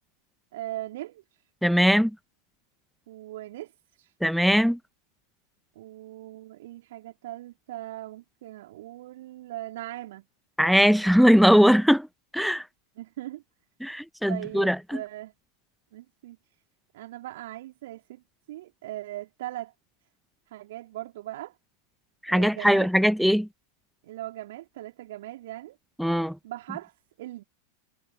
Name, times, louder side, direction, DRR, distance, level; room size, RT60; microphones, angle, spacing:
voice 1, 0.5-1.2 3.1-3.7 4.0-4.1 5.8-10.3 13.0-13.4 14.3-15.3 15.9-16.4 16.9-18.2 18.5-19.7 20.5-21.6 22.3-22.9 24.0-25.8 26.4-27.4, right 15 dB, 55° right, 4.1 m, -39 dB
voice 2, 1.6-2.1 4.2-4.8 10.6-12.1 12.3-12.6 13.8-15.0 22.2-23.5 26.0-26.4, equal, ahead, 1.3 m, -20 dB
figure-of-eight pair, 90°, 0 cm